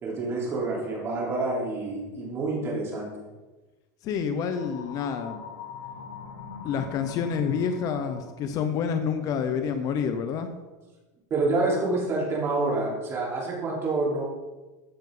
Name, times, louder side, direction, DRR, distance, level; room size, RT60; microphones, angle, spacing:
voice 1, 0.0-3.1 11.3-14.3, right 2 dB, 30° right, -3 dB, 3.8 m, -27 dB
voice 2, 4.0-5.4 6.6-10.5, left 7 dB, 40° left, 8 dB, 0.9 m, -28 dB
sound 1, 4.5-8.5, left 6 dB, 80° left, 2.3 m, -42 dB
15.0 x 7.4 x 3.9 m, 1.2 s
supercardioid pair, 145°, 9 cm